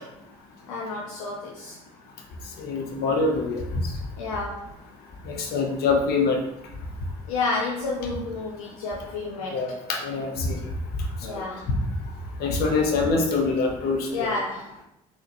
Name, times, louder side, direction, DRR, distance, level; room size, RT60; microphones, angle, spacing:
voice 1, 0.7-1.8 4.2-4.8 7.3-9.7 11.2-11.7 14.1-14.7, left 3 dB, 85° left, -2 dB, 0.5 m, -30 dB
voice 2, 2.6-3.9 5.2-6.4 9.5-10.6 11.3-11.4 12.4-14.3, left 3 dB, 65° left, 2 dB, 0.9 m, -25 dB
4.0 x 3.0 x 2.9 m, 0.82 s
hypercardioid pair, 60°, 18 cm